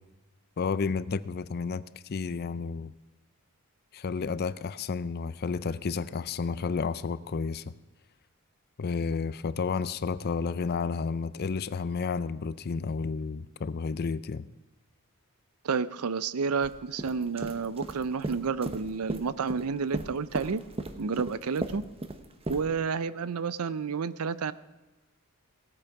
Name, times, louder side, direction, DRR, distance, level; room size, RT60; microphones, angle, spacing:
voice 1, 0.6-2.9 3.9-7.7 8.8-14.5, left 5 dB, 45° left, 0.4 m, -31 dB
voice 2, 15.6-20.6 21.0-21.8 22.5-24.5, right 5 dB, 75° right, 0.5 m, -30 dB
sound 1, 16.6-16.7 17.0-19.7 19.9-22.6, right 2 dB, 25° right, 0.9 m, -35 dB
17.0 x 8.7 x 5.9 m
head